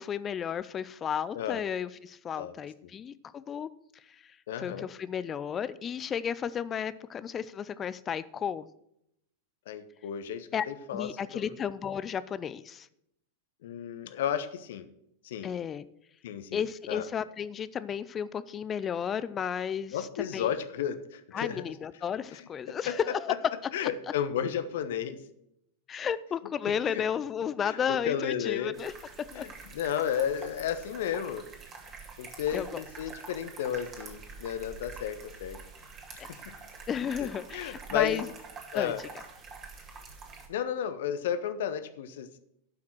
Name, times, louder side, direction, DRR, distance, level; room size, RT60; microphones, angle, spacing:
voice 1, 0.0-8.7 10.5-10.7 10.9-12.9 15.4-15.8 16.5-20.5 21.3-23.5 25.9-28.9 29.3-29.5 32.5-32.8 36.2-36.4 36.9-38.3 38.7-38.9, left 8 dB, 25° left, 16 dB, 0.5 m, -33 dB
voice 2, 4.5-4.9 9.7-11.5 13.6-14.8 15.2-15.5 16.2-17.0 19.9-21.7 22.3-22.4 22.9-23.0 23.7-25.2 26.9-27.0 27.6-28.8 29.3-31.4 32.2-35.6 36.1-36.2 37.5-38.2 38.7-39.0 40.5-42.4, left 9 dB, 55° left, 11 dB, 1.0 m, -33 dB
sound 1, 28.7-40.5, right 4 dB, 30° right, 2.4 m, -46 dB
12.0 x 5.9 x 6.2 m, 0.77 s
figure-of-eight pair, 90°, 0 cm